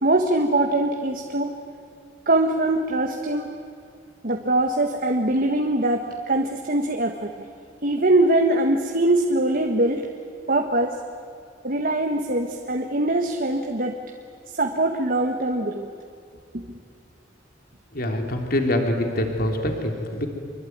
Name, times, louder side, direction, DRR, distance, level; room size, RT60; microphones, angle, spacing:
voice 1, 0.0-1.5 2.3-3.6 4.2-7.3 7.8-10.1 10.5-11.0 11.6-14.0 14.6-15.9, right 2 dB, 50° right, 3 dB, 1.5 m, -22 dB
voice 2, 17.9-20.3, left 1 dB, 55° left, 3 dB, 3.3 m, -24 dB
25.0 x 24.0 x 9.5 m, 2.3 s
head